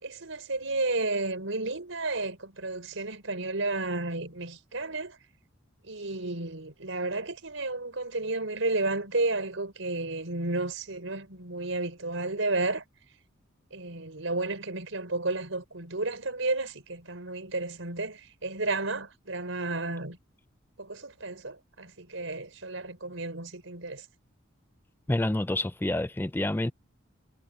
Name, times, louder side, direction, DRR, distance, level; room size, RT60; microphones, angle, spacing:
voice 1, 0.0-5.2 5.9-12.8 13.7-20.2 20.8-24.0, right 2 dB, 80° right, 4.4 m, -32 dB
voice 2, 25.1-26.7, left 1 dB, 10° left, 0.4 m, -28 dB
head